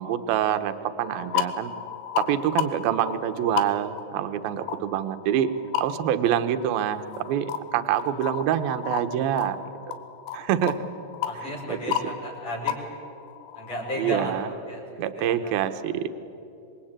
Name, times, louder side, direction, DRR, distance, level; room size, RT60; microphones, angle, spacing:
voice 1, 0.0-1.7 2.2-5.5 5.8-9.6 10.3-10.8 11.4-11.8 14.0-14.5 15.0-16.1, right 10 dB, 70° right, 10 dB, 2.6 m, -26 dB
sound 1, 1.0-14.4, left 10 dB, 75° left, 2.9 m, -34 dB
voice 2, 11.3-12.7 13.5-14.4 14.7-14.9 15.2-15.5, equal, 40° left, -2 dB, 5.7 m, -34 dB
26.5 x 22.0 x 8.9 m, 2.8 s
omnidirectional pair, 4.9 m